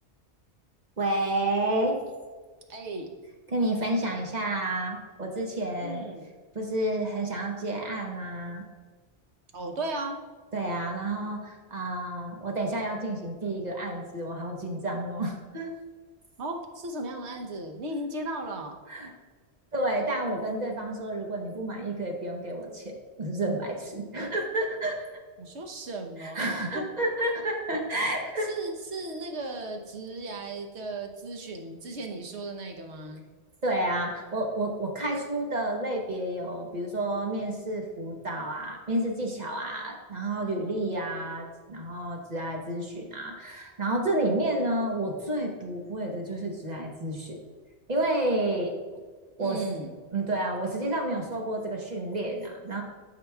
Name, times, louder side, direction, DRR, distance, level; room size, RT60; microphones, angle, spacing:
voice 1, 1.0-2.0 3.5-6.0 6.5-8.6 10.5-15.7 18.9-19.1 19.7-25.1 26.2-28.5 33.6-47.4 47.9-48.7 49.4-49.6 50.1-52.8, right 1 dB, 40° right, 1 dB, 1.1 m, -30 dB
voice 2, 2.7-3.1 5.8-6.2 9.5-10.2 16.4-18.8 25.4-26.8 28.5-33.2 49.4-49.9, right 2 dB, 75° right, 3 dB, 1.2 m, -36 dB
12.0 x 5.0 x 2.3 m, 1.4 s
omnidirectional pair, 1.1 m